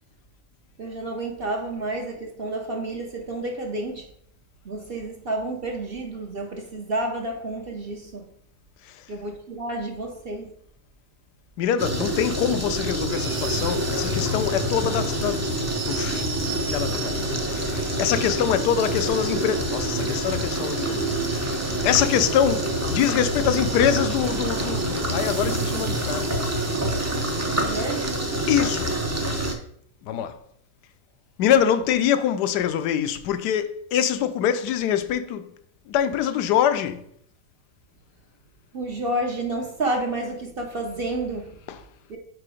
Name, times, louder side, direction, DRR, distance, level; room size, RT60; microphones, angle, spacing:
voice 1, 0.8-4.1 4.6-8.3 9.1-10.5 27.6-28.1 31.5-31.6 38.7-41.6 42.1-42.2, right 2 dB, 50° right, 0.7 m, -30 dB
voice 2, 11.6-17.3 17.5-26.4 28.5-29.4 30.0-30.4 31.4-35.5 35.9-37.1 41.7-41.8, left 9 dB, 85° left, 1.2 m, -25 dB
sound 1, 11.8-29.5, right 1 dB, 25° right, 0.3 m, -27 dB
sound 2, 13.1-28.1, right 8 dB, 75° right, 1.3 m, -37 dB
sound 3, 14.1-19.2, left 12 dB, 60° left, 0.8 m, -39 dB
4.8 x 4.6 x 4.8 m
omnidirectional pair, 1.7 m